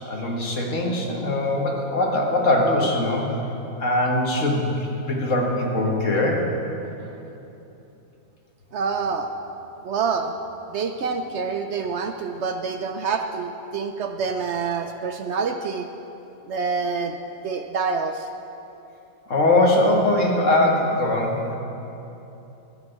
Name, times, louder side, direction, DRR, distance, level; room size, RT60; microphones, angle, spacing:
voice 1, 0.1-3.3 3.8-4.7 5.1-6.5 19.3-21.5, left 1 dB, 65° left, -1 dB, 1.9 m, -21 dB
voice 2, 8.7-9.3 9.8-10.3 10.7-15.9 16.5-17.2 17.4-18.3, right 5 dB, 65° right, 6 dB, 0.8 m, -27 dB
12.5 x 7.1 x 7.9 m, 2.9 s
omnidirectional pair, 1.4 m